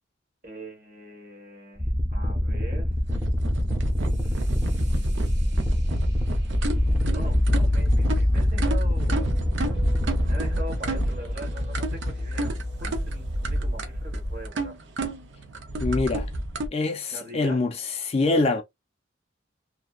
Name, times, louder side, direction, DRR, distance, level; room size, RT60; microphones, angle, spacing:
voice 1, 0.4-2.9 4.2-5.7 7.0-9.3 10.2-14.8 17.1-17.6, right 1 dB, 50° right, 1.1 m, -42 dB
sound 1, 1.8-10.5, equal, 10° right, 0.6 m, -27 dB
sound 2, 3.1-16.7, right 1 dB, 90° right, 0.6 m, -30 dB
sound 3, 3.8-14.5, left 1 dB, 65° right, 1.2 m, -28 dB
voice 2, 15.8-16.3 16.7-17.7 18.0-18.6, left 3 dB, 35° left, 0.4 m, -24 dB
2.7 x 2.1 x 2.3 m
head